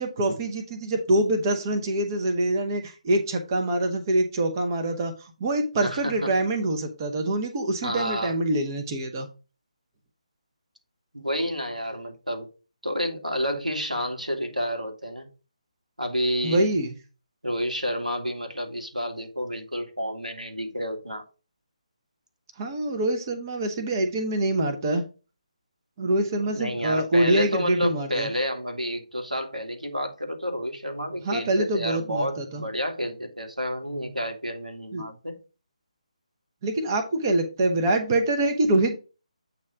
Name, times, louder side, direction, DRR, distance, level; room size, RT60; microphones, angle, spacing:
voice 1, 0.0-9.3 16.4-16.9 22.6-25.0 26.0-28.3 31.2-32.6 34.9-35.0 36.6-38.9, right 1 dB, 30° right, 0.9 m, -25 dB
voice 2, 5.8-6.3 7.8-8.3 11.1-12.5 12.8-15.3 16.0-16.6 17.4-21.2 26.5-35.4, equal, 90° right, 1.9 m, -30 dB
8.3 x 3.2 x 4.9 m
figure-of-eight pair, 145°, 4 cm